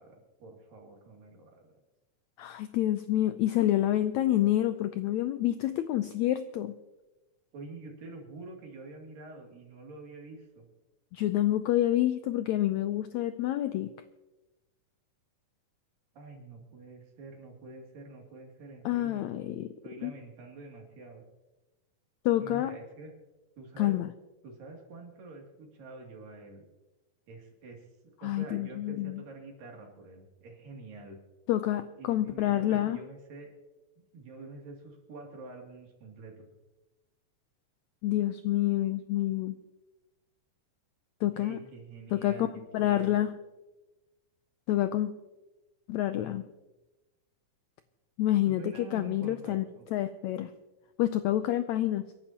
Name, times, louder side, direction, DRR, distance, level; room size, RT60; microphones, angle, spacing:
voice 1, 0.0-1.8 7.5-10.7 16.1-19.3 19.8-21.2 22.4-23.1 23.6-24.0 24.4-26.7 27.3-27.9 28.2-31.2 32.0-33.5 34.1-36.5 41.3-43.2 48.4-49.8, right 3 dB, 85° right, 1 dB, 4.3 m, -47 dB
voice 2, 2.4-6.8 11.1-13.9 18.8-19.7 20.0-20.1 22.2-22.8 23.8-24.1 28.2-29.2 31.5-33.0 38.0-39.6 41.2-41.6 42.1-43.3 44.7-45.1 45.9-46.4 48.2-49.6 49.9-50.5 51.0-52.0, left 13 dB, 90° left, 10 dB, 1.6 m, -28 dB
29.0 x 11.5 x 2.9 m, 1.1 s
omnidirectional pair, 3.8 m